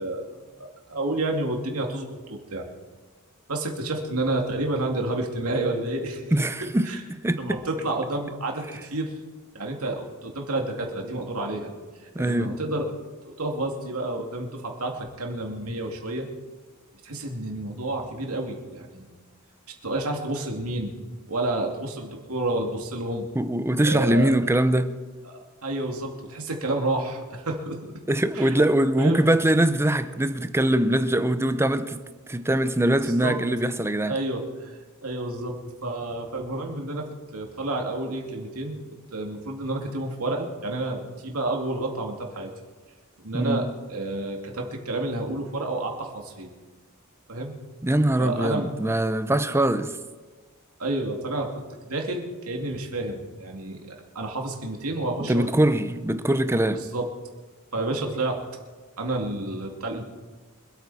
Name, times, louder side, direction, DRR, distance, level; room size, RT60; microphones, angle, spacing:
voice 1, 0.0-2.7 3.5-6.2 6.6-7.0 7.4-9.1 9.5-11.7 12.2-12.9 13.4-16.3 17.0-19.0 19.8-20.9 21.3-23.3 23.8-24.3 25.3-27.8 28.3-28.5 29.0-29.2 33.0-33.4 34.1-38.8 39.1-42.5 43.2-46.5 47.3-47.5 48.2-48.7 50.8-53.8 54.1-55.5 56.7-57.1 57.7-58.4 59.0-60.0, right 2 dB, 85° right, 2.4 m, -30 dB
voice 2, 6.3-7.6 12.1-12.5 23.3-24.9 28.1-32.0 32.3-34.2 43.3-43.6 47.8-49.9 55.3-56.8, right 1 dB, 10° right, 0.7 m, -22 dB
25.5 x 8.8 x 4.2 m
head